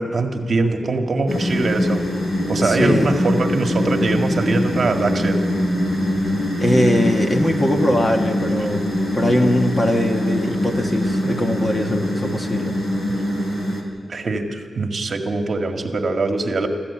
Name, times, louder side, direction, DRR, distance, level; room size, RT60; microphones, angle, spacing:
voice 1, 0.0-2.0 2.5-5.4 14.1-16.7, right 3 dB, 45° right, 4 dB, 1.9 m, -22 dB
sound 1, 1.3-13.8, equal, 55° left, 3.7 m, -22 dB
voice 2, 2.6-3.1 6.6-8.8 9.1-12.7, left 1 dB, 25° left, 3 dB, 1.5 m, -21 dB
24.5 x 14.5 x 8.6 m, 2.4 s
wide cardioid pair, 165°, 0 cm